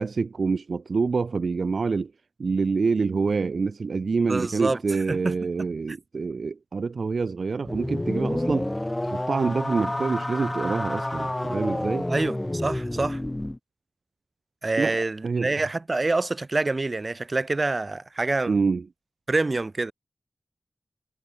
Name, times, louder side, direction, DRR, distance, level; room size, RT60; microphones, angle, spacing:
voice 1, 0.0-2.1 2.4-8.7 9.0-12.1 14.8-15.6 18.5-18.8, right 4 dB, 75° right, 0.8 m, -26 dB
voice 2, 4.2-4.8 5.1-5.3 12.1-13.2 14.6-18.6 19.3-19.9, right 3 dB, 45° right, 2.2 m, -26 dB
sound 1, 7.6-13.6, left 1 dB, 20° left, 4.5 m, -29 dB
cardioid pair, 45°, 0 cm